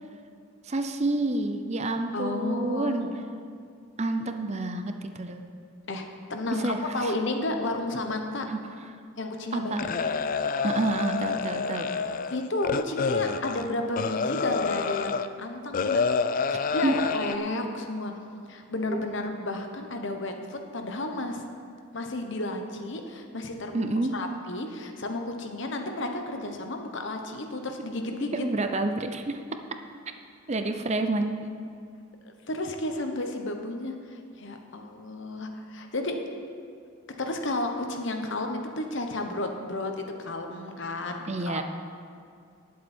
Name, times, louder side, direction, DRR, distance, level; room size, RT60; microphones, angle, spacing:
voice 1, 0.6-3.1 4.0-5.4 6.6-7.1 8.5-8.6 9.5-9.9 10.6-11.9 16.5-17.0 18.9-19.0 23.7-24.2 28.3-29.4 30.5-31.4 41.3-41.6, right 2 dB, 30° right, 7 dB, 0.6 m, -29 dB
voice 2, 2.1-3.1 5.9-6.0 6.3-8.4 9.2-9.9 12.3-16.0 16.5-18.1 18.5-21.4 21.9-28.3 32.2-36.2 37.2-39.9 40.2-41.6, left 2 dB, 60° left, 4 dB, 1.2 m, -32 dB
sound 1, 9.8-15.3 15.7-17.4, left 5 dB, 40° left, 0.4 m, -28 dB
19.0 x 7.5 x 4.4 m, 2.3 s
head